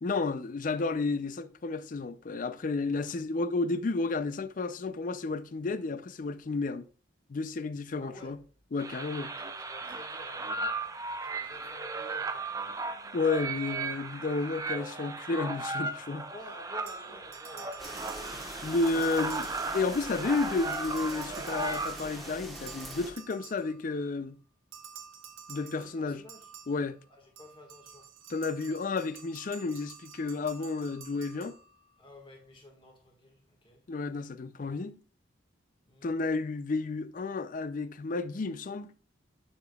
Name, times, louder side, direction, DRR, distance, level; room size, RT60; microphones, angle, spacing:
voice 1, 0.0-6.8 7.3-8.4 8.7-9.3 13.1-16.2 18.6-19.5 19.7-24.4 25.5-26.2 26.7-27.0 28.3-31.5 33.9-35.0 36.0-38.9, left 3 dB, 40° left, 0.4 m, -32 dB
voice 2, 8.0-8.4 9.4-12.7 16.2-18.1 18.9-19.4 25.5-26.5 27.1-28.0 32.0-33.8 35.9-36.1, left 1 dB, 25° left, 1.7 m, -51 dB
sound 1, 8.8-22.3, right 3 dB, 15° right, 0.5 m, -36 dB
sound 2, 16.8-20.3 20.6-24.1 24.7-32.0, right 7 dB, 85° right, 0.9 m, -50 dB
sound 3, 17.8-23.1, right 1 dB, ahead, 1.1 m, -44 dB
11.0 x 5.0 x 2.3 m
head